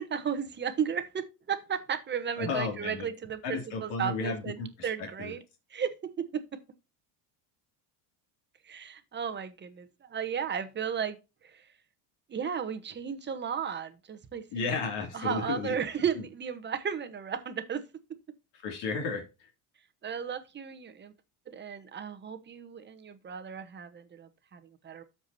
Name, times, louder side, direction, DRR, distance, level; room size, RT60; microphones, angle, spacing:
voice 1, 0.0-5.4 5.7-6.4 8.7-11.2 11.4-11.5 12.3-14.7 15.1-17.8 20.0-21.1 21.5-25.0, right 7 dB, 25° right, 1.0 m, -34 dB
voice 2, 2.4-3.1 3.4-5.3 14.5-15.8 16.2-16.3 18.6-19.3, left 4 dB, 65° left, 2.6 m, -33 dB
13.0 x 4.8 x 2.7 m
cardioid pair, 135°, 45 cm